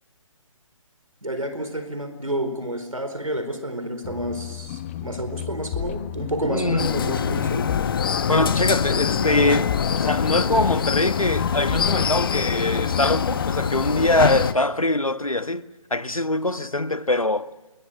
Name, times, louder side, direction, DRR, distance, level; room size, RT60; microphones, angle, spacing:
voice 1, 1.2-7.7, right 1 dB, 85° right, 4.5 m, -30 dB
sound 1, 4.0-13.7, left 11 dB, 20° left, 1.0 m, -32 dB
voice 2, 6.5-7.0 8.3-15.6 15.9-17.5, left 2 dB, 90° left, 1.2 m, -23 dB
sound 2, 6.8-14.5, left 7 dB, 40° left, 1.3 m, -24 dB
28.0 x 24.5 x 6.5 m
figure-of-eight pair, 140°, 17 cm